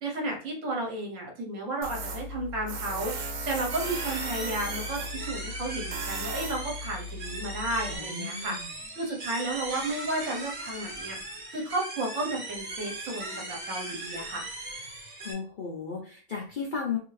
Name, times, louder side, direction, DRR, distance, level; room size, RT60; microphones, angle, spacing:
voice 1, 0.0-8.6 8.9-11.2 11.5-14.5, right 2 dB, 65° right, 0 dB, 1.2 m, -33 dB
Tools, 1.8-8.0, right 1 dB, 90° right, 1.1 m, -36 dB
sound 1, 3.7-15.3, right 2 dB, 40° right, 0.7 m, -38 dB
voice 2, 7.9-8.7 15.2-17.0, left 5 dB, 50° left, -3 dB, 0.6 m, -35 dB
2.8 x 2.7 x 3.1 m, 0.40 s
omnidirectional pair, 1.5 m